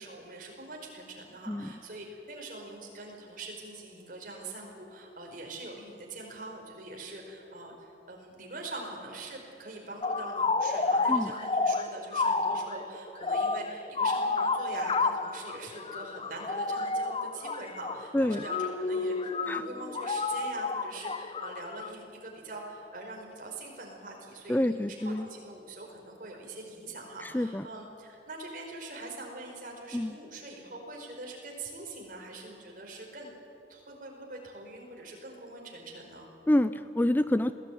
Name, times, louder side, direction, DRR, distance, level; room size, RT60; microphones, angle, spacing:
voice 1, 0.0-33.4 33.7-36.3, right 2 dB, 50° right, 0 dB, 5.0 m, -43 dB
sound 1, 10.0-21.9, left 3 dB, 30° left, 0.8 m, -30 dB
voice 2, 24.5-25.3 27.3-27.6 29.9-30.1 36.5-37.5, left 1 dB, 10° left, 12 dB, 0.4 m, -27 dB
21.5 x 17.0 x 9.2 m, 2.8 s
head